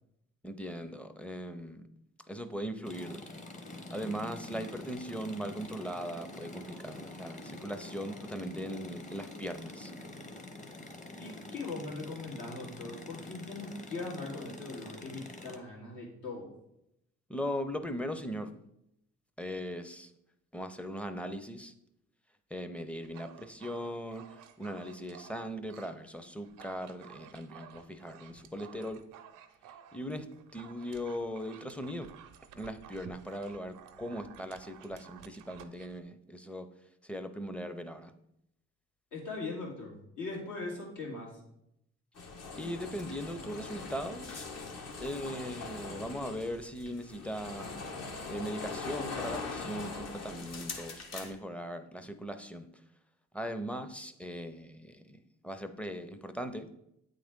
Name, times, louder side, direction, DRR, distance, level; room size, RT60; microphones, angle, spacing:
voice 1, 0.4-1.8 2.3-3.2 3.9-9.9 17.3-18.6 19.4-20.1 20.5-21.7 22.5-24.2 24.6-29.0 29.9-30.3 30.5-32.1 32.5-36.7 37.0-38.1 42.5-44.5 45.0-47.7 48.3-52.7 53.3-55.2 55.4-56.7, equal, 5° left, 9 dB, 0.5 m, -39 dB
sound 1, 2.8-15.6, left 1 dB, 25° left, 0.8 m, -46 dB
voice 2, 11.2-16.5 39.1-41.4, left 3 dB, 85° left, -3 dB, 2.4 m, -40 dB
Dog, 23.0-26.0 26.3-36.0, right 9 dB, 90° right, 0.6 m, -54 dB
sound 2, 42.1-51.3, left 4 dB, 55° left, 1.1 m, -41 dB
8.5 x 3.8 x 3.6 m, 0.78 s
cardioid pair, 90°, 30 cm